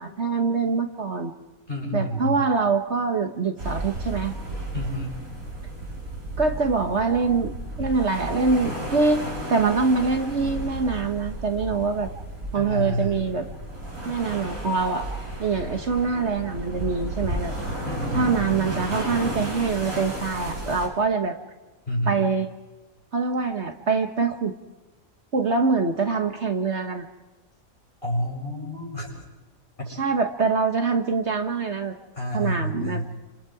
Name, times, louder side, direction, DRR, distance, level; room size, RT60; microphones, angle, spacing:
voice 1, 0.0-1.3 1.9-4.3 6.4-7.5 7.8-9.2 9.5-12.1 12.5-13.5 14.0-15.1 15.4-17.5 18.1-21.4 22.1-22.5 23.1-24.5 25.3-27.1 29.9-31.9 32.3-33.0, right 4 dB, 55° right, 5 dB, 1.5 m, -24 dB
voice 2, 1.7-2.4 4.7-5.2 12.5-13.2 17.8-18.5 21.9-22.2 28.0-29.1 29.8-29.9 32.1-33.1, equal, 40° left, -2 dB, 7.8 m, -29 dB
sound 1, 3.6-20.9, right 1 dB, 80° right, 5.6 m, -33 dB
29.0 x 27.0 x 4.8 m, 1.1 s
omnidirectional pair, 1.5 m